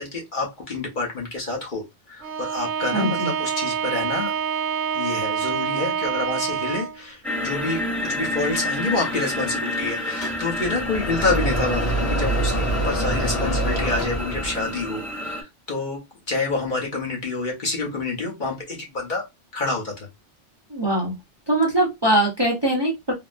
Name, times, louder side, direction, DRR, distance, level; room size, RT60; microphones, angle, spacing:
voice 1, 0.0-4.3 4.9-16.0 16.3-19.2 19.5-20.1, left 3 dB, 45° left, -1 dB, 1.0 m, -28 dB
Bowed string instrument, 2.2-7.1, right 7 dB, 75° right, 0.9 m, -26 dB
voice 2, 2.9-3.3 20.7-21.1 21.5-23.1, right 1 dB, 25° right, -1 dB, 0.7 m, -22 dB
sound 1, 7.2-15.4, left 1 dB, ahead, 0.4 m, -29 dB
sound 2, 10.2-14.7, right 1 dB, 60° left, 1.4 m, -25 dB
3.5 x 2.0 x 2.5 m, 0.20 s
omnidirectional pair, 1.2 m